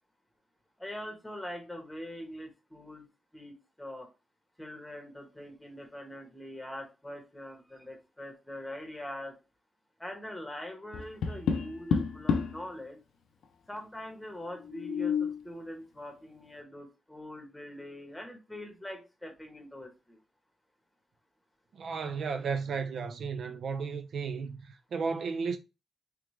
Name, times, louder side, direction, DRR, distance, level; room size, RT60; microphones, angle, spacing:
voice 1, 0.8-3.1 3.3-4.1 4.6-9.4 10.0-13.0 13.7-20.2, left 1 dB, 5° left, 1.1 m, -43 dB
Tap, 10.9-12.6 14.6-15.4, left 6 dB, 85° left, 0.5 m, -30 dB
voice 2, 21.7-25.6, right 5 dB, 65° right, 0.4 m, -34 dB
3.5 x 3.2 x 3.1 m
wide cardioid pair, 130°, 0 cm